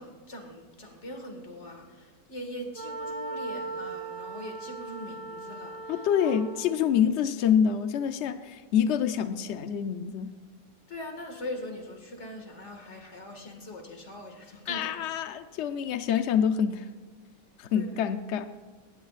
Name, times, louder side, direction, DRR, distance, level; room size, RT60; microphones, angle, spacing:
voice 1, 0.0-5.9 6.2-6.3 10.9-14.9 17.7-17.9, left 1 dB, 40° left, 3 dB, 2.1 m, -41 dB
Wind instrument woodwind instrument, 2.7-6.9, right 3 dB, 80° right, 2.4 m, -38 dB
voice 2, 5.9-10.3 14.7-16.9 17.6-18.5, left 8 dB, 80° left, 9 dB, 0.6 m, -26 dB
18.5 x 15.5 x 2.5 m, 1.4 s
omnidirectional pair, 1.9 m